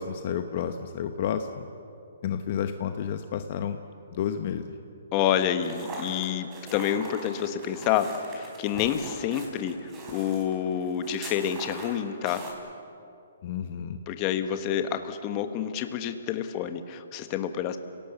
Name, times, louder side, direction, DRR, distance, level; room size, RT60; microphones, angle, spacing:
voice 1, 0.0-1.7 2.2-3.8 4.1-4.7 13.4-14.0, left 8 dB, 45° left, 8 dB, 1.0 m, -31 dB
voice 2, 5.1-12.4 14.1-17.8, left 9 dB, 30° left, 9 dB, 1.3 m, -28 dB
sound 1, 5.6-12.5, right 2 dB, 20° right, 4.4 m, -41 dB
30.0 x 18.0 x 7.1 m, 2.6 s
hypercardioid pair, 155°, 0 cm